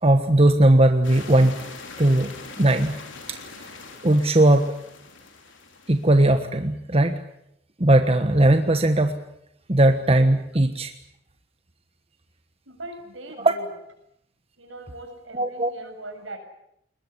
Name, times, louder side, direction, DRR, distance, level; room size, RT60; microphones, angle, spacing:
voice 1, 0.0-1.6 2.0-2.3 2.6-3.0 3.3-3.4 4.0-4.7 5.9-7.2 7.8-9.2 9.7-10.9 13.4-13.5 15.3-15.7, right 1 dB, 30° right, 7 dB, 1.3 m, -18 dB
sound 1, 1.0-6.4, left 4 dB, 70° left, 4.4 m, -42 dB
voice 2, 12.7-13.7 14.6-16.4, right 1 dB, 75° right, 5 dB, 7.1 m, -40 dB
22.0 x 20.5 x 9.6 m, 0.75 s
head